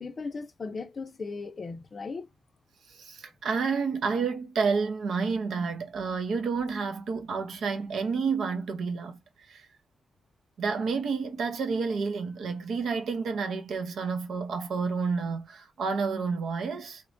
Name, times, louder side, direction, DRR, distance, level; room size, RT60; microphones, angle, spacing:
voice 1, 0.0-2.3, left 4 dB, 35° left, 0.5 m, -37 dB
voice 2, 2.9-9.2 9.5-9.7 10.6-17.0, right 5 dB, 75° right, 0.6 m, -30 dB
3.1 x 2.1 x 2.4 m
wide cardioid pair, 140°, 0 cm